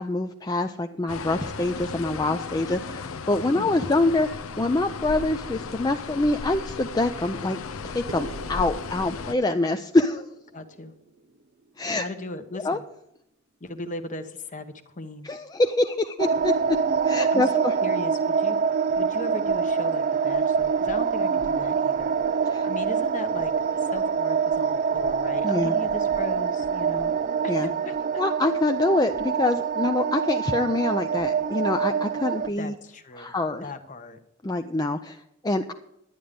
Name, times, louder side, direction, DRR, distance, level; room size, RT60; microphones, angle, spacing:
voice 1, 0.0-10.3 11.8-12.0 12.6-12.8 15.2-16.5 17.0-17.7 22.5-22.7 25.4-25.7 27.5-27.7 28.2-32.7 33.2-33.6 34.4-35.7, left 2 dB, 20° left, 6 dB, 0.5 m, -25 dB
sound 1, 1.1-9.3, left 4 dB, 90° left, 0.7 m, -35 dB
sound 2, 8.1-12.5, right 4 dB, 65° right, 0.9 m, -45 dB
voice 2, 9.2-9.6 10.5-10.9 11.9-12.8 13.6-15.3 17.3-18.6 19.0-22.1 22.6-23.5 23.8-27.1 27.4-27.9 32.6-33.4 33.6-34.2, left 2 dB, 40° left, 8 dB, 1.1 m, -37 dB
sound 3, 16.2-32.5, right 6 dB, 40° right, 0.3 m, -25 dB
11.5 x 10.0 x 5.2 m, 0.80 s
head